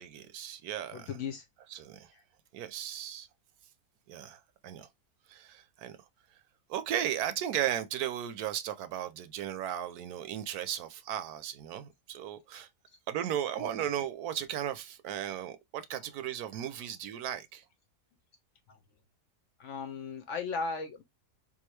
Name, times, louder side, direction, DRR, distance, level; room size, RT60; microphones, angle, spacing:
voice 1, 0.0-1.1 1.7-2.1 2.5-3.3 4.1-4.9 5.3-6.0 6.7-12.7 13.1-17.6, right 10 dB, 75° right, 1.1 m, -36 dB
voice 2, 0.9-1.4 12.5-12.6 13.6-13.7 18.7-18.8 19.6-21.0, left 5 dB, 65° left, 0.8 m, -37 dB
3.7 x 2.5 x 3.1 m
omnidirectional pair, 1.6 m